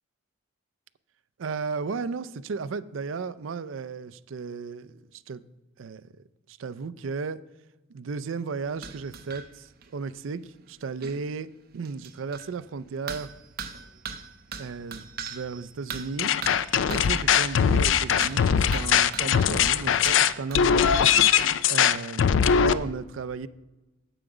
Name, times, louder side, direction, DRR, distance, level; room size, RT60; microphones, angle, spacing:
voice 1, 1.4-5.4 5.8-6.0 6.5-7.4 7.9-10.4 10.7-11.5 11.7-13.3 14.6-16.3 16.9-20.9 21.7-23.5, right 5 dB, 85° right, 16 dB, 0.5 m, -34 dB
sound 1, 8.6-9.5 9.8-9.9 10.1-10.2 10.7-10.8 11.0-11.2 11.8-12.6 13.1-17.7 18.2-19.6 20.0-21.0, right 6 dB, 50° right, 0.7 m, -40 dB
sound 2, 16.2-22.7, left 8 dB, 70° left, 0.4 m, -21 dB
8.9 x 7.9 x 4.9 m, 1.1 s
head